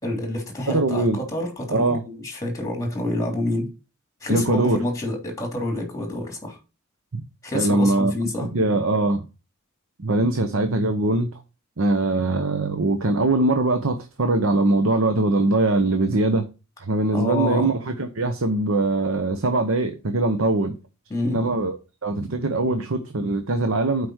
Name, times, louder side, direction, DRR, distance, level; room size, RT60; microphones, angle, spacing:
voice 1, 0.0-3.7 4.2-6.6 7.4-8.5 17.1-17.7 21.1-21.4, left 1 dB, 15° left, 3.2 m, -27 dB
voice 2, 0.7-1.2 1.7-2.0 4.3-4.8 7.1-7.2 7.5-8.1 8.5-9.2 10.0-11.3 11.8-16.5 16.8-20.7 21.3-21.8 22.0-24.1, right 2 dB, 70° right, 0.9 m, -22 dB
8.0 x 5.0 x 6.3 m
head